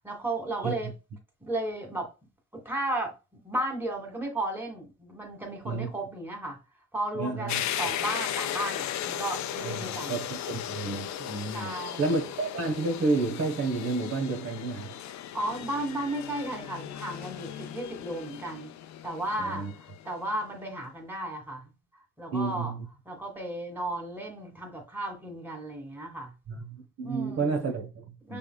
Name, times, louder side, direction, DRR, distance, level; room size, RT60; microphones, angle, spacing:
voice 1, 0.0-0.9 1.4-2.1 2.5-6.6 6.9-10.2 11.5-12.2 15.3-18.7 19.0-21.7 22.2-22.7 23.1-26.3 27.0-27.6 28.2-28.4, right 1 dB, 5° right, 2.0 m, -34 dB
voice 2, 7.1-7.6 9.6-15.0 19.4-19.7 22.3-22.9 26.5-28.4, right 3 dB, 55° right, 1.2 m, -31 dB
sound 1, 7.5-20.2, left 11 dB, 70° left, 0.5 m, -36 dB
5.6 x 3.6 x 2.3 m
cardioid pair, 90°, 30 cm